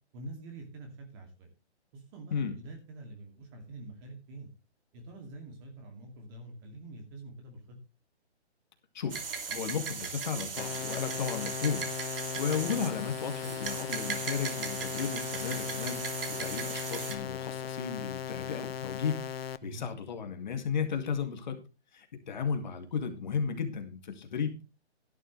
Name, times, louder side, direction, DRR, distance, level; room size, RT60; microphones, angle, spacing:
voice 1, 0.1-1.5 1.9-4.5 4.9-7.8 12.5-12.6 19.6-19.9, right 2 dB, 20° right, 3 dB, 2.3 m, -46 dB
sound 1, 9.1-17.1, right 5 dB, 55° right, 2.7 m, -38 dB
voice 2, 9.5-11.9 12.4-21.6 21.9-24.6, left 6 dB, 40° left, 6 dB, 2.1 m, -34 dB
sound 2, 10.6-19.6, left 8 dB, 60° left, 0.7 m, -38 dB
12.0 x 11.0 x 3.1 m, 0.29 s
hypercardioid pair, 160°, 34 cm